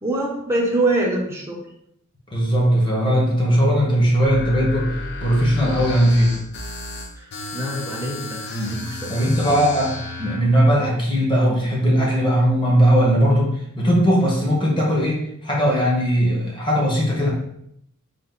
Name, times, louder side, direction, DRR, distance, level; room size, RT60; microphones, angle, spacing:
voice 1, 0.0-1.6 7.2-9.7, right 2 dB, 10° right, -2 dB, 0.7 m, -25 dB
voice 2, 2.3-4.9 5.2-6.3 8.5-8.8 9.1-9.9 10.2-17.3, equal, 25° left, -3 dB, 1.2 m, -19 dB
sound 1, 4.2-10.4, left 2 dB, 50° left, 0.6 m, -32 dB
3.9 x 2.5 x 3.8 m, 0.74 s
head